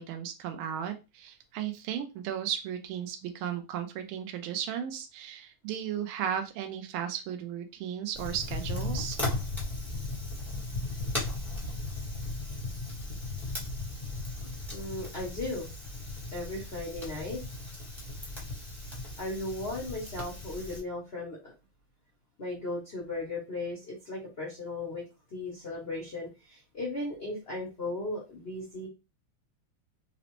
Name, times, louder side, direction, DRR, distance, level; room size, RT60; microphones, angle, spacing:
voice 1, 0.0-9.2, right 9 dB, 85° right, 6 dB, 1.4 m, -35 dB
Fire, 8.1-20.8, left 2 dB, ahead, 0.9 m, -36 dB
voice 2, 14.7-15.7 16.3-17.4 19.2-21.5 22.4-25.0 25.3-28.9, left 2 dB, 80° left, -2 dB, 0.5 m, -36 dB
3.9 x 2.0 x 2.9 m, 0.27 s
omnidirectional pair, 2.3 m